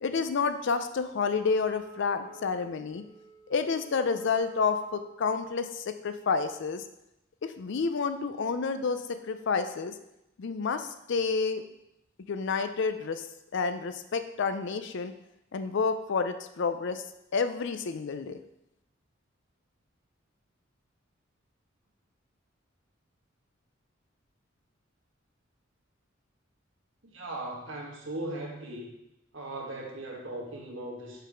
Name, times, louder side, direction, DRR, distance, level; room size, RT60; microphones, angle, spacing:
voice 1, 0.0-3.0 3.5-6.8 7.4-9.9 10.4-11.6 12.3-13.3 13.5-15.1 15.5-17.0 17.3-18.4, left 5 dB, 65° left, 10 dB, 0.5 m, -29 dB
Wind instrument woodwind instrument, 1.3-5.4, right 3 dB, ahead, 2.1 m, -52 dB
voice 2, 27.0-28.9 29.3-31.3, right 1 dB, 75° right, 0 dB, 1.3 m, -38 dB
5.4 x 4.0 x 5.0 m, 0.86 s
head